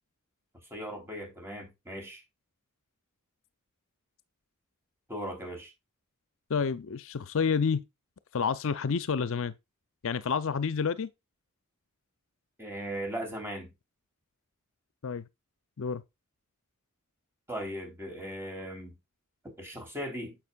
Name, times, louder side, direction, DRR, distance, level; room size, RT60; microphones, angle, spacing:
voice 1, 0.7-2.2 5.1-5.7 12.6-13.7 17.5-18.9 19.4-20.4, equal, 10° right, 3.4 m, -38 dB
voice 2, 6.5-7.8 8.3-9.5 10.0-11.1 15.0-15.2 15.8-16.0, left 6 dB, 65° left, 0.6 m, -29 dB
9.6 x 7.4 x 2.3 m
head